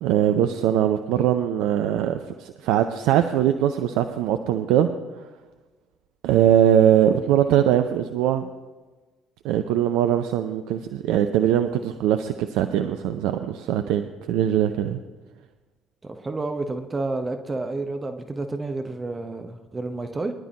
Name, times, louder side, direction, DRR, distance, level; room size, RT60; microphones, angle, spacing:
voice 1, 0.0-4.9 6.2-8.5 9.4-15.0, right 10 dB, 70° right, 8 dB, 0.6 m, -21 dB
voice 2, 16.0-20.3, right 2 dB, 25° right, 6 dB, 1.1 m, -30 dB
21.5 x 11.0 x 3.0 m, 1.3 s
figure-of-eight pair, 50°, 0 cm